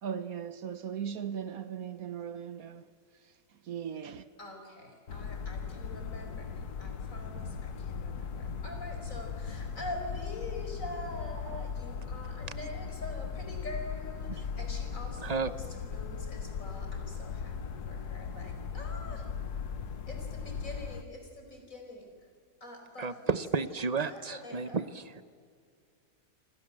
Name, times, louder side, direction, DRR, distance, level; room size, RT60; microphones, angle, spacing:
voice 1, 0.0-4.3, right 8 dB, 65° right, 1.3 m, -39 dB
voice 2, 4.4-19.3 20.1-22.1 22.6-23.4 23.7-24.8, left 1 dB, 55° left, 5.1 m, -45 dB
sound 1, 5.1-21.0, left 6 dB, 80° left, 1.7 m, -38 dB
voice 3, 15.2-15.5 23.0-25.2, right 5 dB, 35° right, 0.7 m, -32 dB
27.0 x 26.5 x 7.6 m
omnidirectional pair, 1.7 m